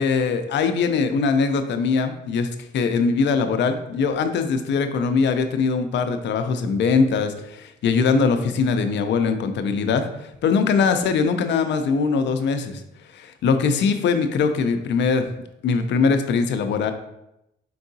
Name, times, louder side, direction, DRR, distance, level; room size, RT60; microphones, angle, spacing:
voice 1, 0.0-12.8 13.1-15.2 15.6-16.9, left 5 dB, 65° left, 8 dB, 0.5 m, -21 dB
4.6 x 3.5 x 2.7 m, 0.85 s
cardioid pair, 80°, 20 cm